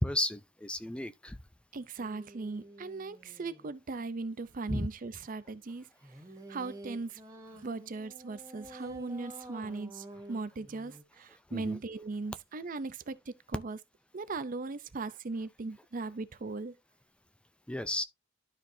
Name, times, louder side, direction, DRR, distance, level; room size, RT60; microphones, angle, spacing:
voice 1, 0.0-1.4 4.7-4.9 11.5-11.8 17.7-18.0, left 1 dB, 5° left, 0.4 m, -33 dB
voice 2, 1.7-5.9 6.5-7.2 7.5-13.8 14.1-16.8, right 3 dB, 45° right, 0.5 m, -38 dB
sound 1, 2.0-3.7 6.0-11.0, right 1 dB, 15° right, 1.0 m, -50 dB
12.5 x 4.4 x 2.6 m
head